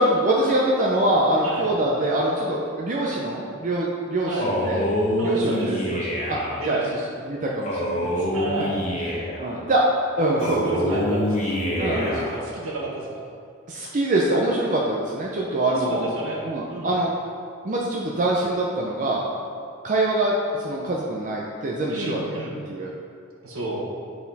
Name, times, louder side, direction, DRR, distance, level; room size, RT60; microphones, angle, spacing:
voice 1, 0.0-4.8 5.2-6.4 6.6-6.8 7.3-8.3 9.4-9.9 10.2-11.0 11.8-12.2 13.7-16.1 16.4-17.1 17.6-19.3 19.8-22.4 22.7-22.9, right 1 dB, 35° right, -3 dB, 0.5 m, -24 dB
Male speech man speaking, 4.4-6.6 7.6-9.5 10.4-12.4, left 1 dB, 30° left, 0.9 m, -26 dB
voice 2, 5.2-5.7 6.5-7.3 8.3-8.8 10.2-11.6 11.9-13.3 15.6-16.9 21.9-22.5 23.4-23.9, right 2 dB, 70° right, -3 dB, 1.4 m, -31 dB
7.9 x 4.3 x 4.1 m, 2.4 s
head